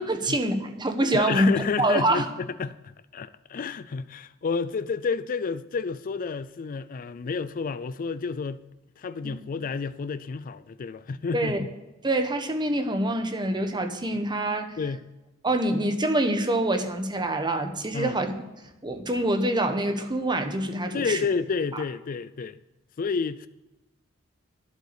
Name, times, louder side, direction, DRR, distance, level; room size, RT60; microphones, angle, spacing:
voice 1, 0.0-1.5 1.8-2.3 9.2-9.4 11.3-11.6 12.0-14.8 15.4-18.3 18.8-21.3 21.7-21.8, right 1 dB, 20° right, 1.1 m, -25 dB
voice 2, 1.1-8.6 9.0-11.7 14.8-15.0 17.9-18.1 20.9-22.6 23.0-23.5, left 5 dB, 40° left, 0.4 m, -30 dB
11.0 x 8.1 x 6.8 m
head